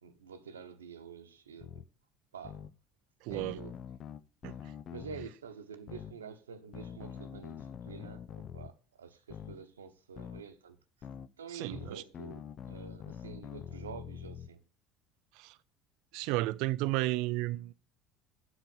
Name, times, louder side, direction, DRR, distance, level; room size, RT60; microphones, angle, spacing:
voice 1, 0.0-1.8 2.3-2.6 3.3-3.8 4.9-10.8 11.4-14.6, right 6 dB, 80° right, 1.0 m, -48 dB
sound 1, 1.6-1.8 2.4-2.7 3.3-5.3 5.9-6.1 6.7-8.7 9.3-9.6 10.2-10.4 11.0-11.3 11.7-14.5, left 8 dB, 45° left, 0.6 m, -45 dB
voice 2, 3.2-3.6 4.4-4.6 11.5-12.0 15.4-15.6 16.1-17.7, right 19 dB, 60° right, 0.4 m, -33 dB
7.8 x 6.2 x 7.2 m
figure-of-eight pair, 65°, 0 cm